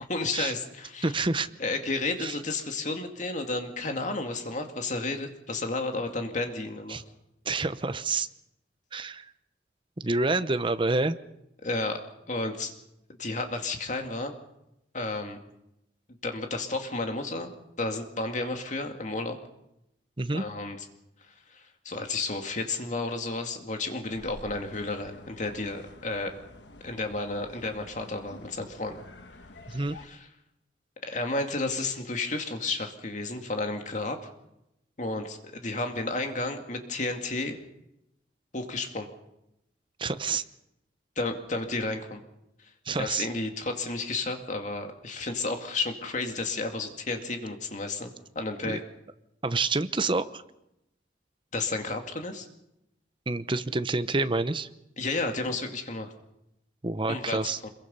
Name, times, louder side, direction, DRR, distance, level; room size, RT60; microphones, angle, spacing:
voice 1, 0.1-1.1 1.6-7.0 11.6-12.0 12.3-12.7 13.2-14.3 14.9-15.4 16.2-17.5 17.8-19.4 20.3-20.9 21.5-26.4 26.8-29.0 29.7-30.3 31.1-34.3 35.0-37.6 38.5-39.1 41.2-42.2 42.9-48.8 51.5-52.5 55.0-56.1 57.1-57.7, left 3 dB, 45° left, 5 dB, 2.2 m, -32 dB
voice 2, 1.0-1.5 2.2-2.3 6.9-7.0 7.5-8.3 8.9-9.2 10.0-11.2 20.2-20.4 29.7-30.0 40.0-40.4 42.9-43.3 48.6-48.8 49.4-50.4 53.3-54.7 56.8-57.6, right 3 dB, 30° right, 12 dB, 0.8 m, -28 dB
sound 1, 24.1-30.1, left 2 dB, 75° left, 1.4 m, -49 dB
26.5 x 22.5 x 5.6 m, 0.85 s
head